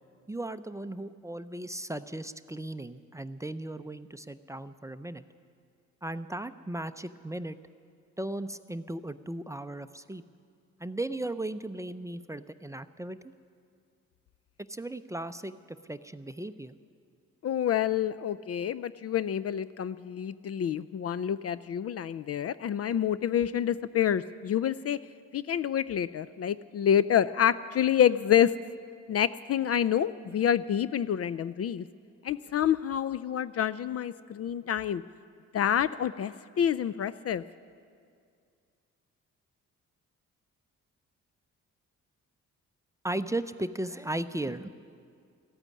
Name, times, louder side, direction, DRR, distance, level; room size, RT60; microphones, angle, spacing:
voice 1, 0.3-5.2 6.0-7.6 8.2-10.2 10.8-13.2 14.7-16.7 43.0-44.7, right 1 dB, 10° right, 11 dB, 0.5 m, -36 dB
voice 2, 17.4-25.0 25.3-28.5 29.1-31.9 32.2-35.0 35.5-37.4, left 9 dB, 45° left, 16 dB, 0.4 m, -27 dB
14.5 x 8.9 x 9.6 m, 2.2 s
supercardioid pair, 55°, 34 cm